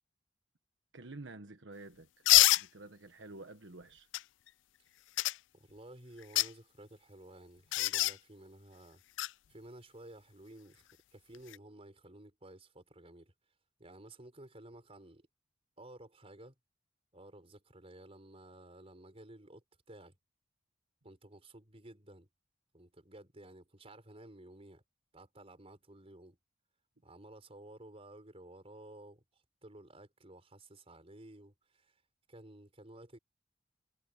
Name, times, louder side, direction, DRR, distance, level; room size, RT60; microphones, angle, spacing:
voice 1, 0.9-2.2 2.6-4.1, right 2 dB, 80° right, 1.3 m, -49 dB
sound 1, 2.3-2.6 4.1-4.2 5.2-5.4 6.2-6.5 7.7-8.1 9.2-9.3 11.3-11.6, left 17 dB, 75° left, 0.4 m, -25 dB
voice 2, 5.5-9.0 9.5-10.8 11.1-13.3 13.8-15.3 15.8-16.5 17.1-20.1 21.0-22.3 22.7-24.8 25.1-26.4 27.0-29.2 29.6-31.9 32.3-33.2, right 1 dB, 35° right, 5.1 m, -54 dB
head